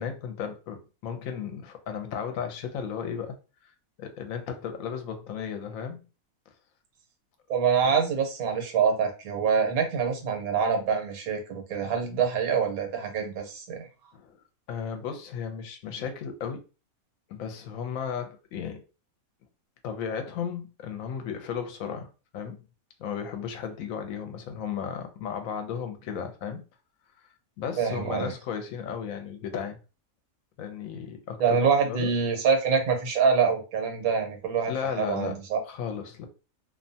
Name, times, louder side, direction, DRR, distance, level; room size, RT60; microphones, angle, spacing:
voice 1, 0.0-3.4 3.6-3.7 4.0-6.0 14.1-14.4 14.7-16.6 17.3-18.8 19.8-22.6 23.0-26.6 27.6-29.8 30.6-32.1 34.7-35.4 35.6-36.3, left 7 dB, 75° left, 0.9 m, -34 dB
voice 2, 7.5-13.9 27.8-28.3 31.4-35.6, right 6 dB, 85° right, 1.2 m, -25 dB
2.6 x 2.2 x 2.6 m
omnidirectional pair, 1.5 m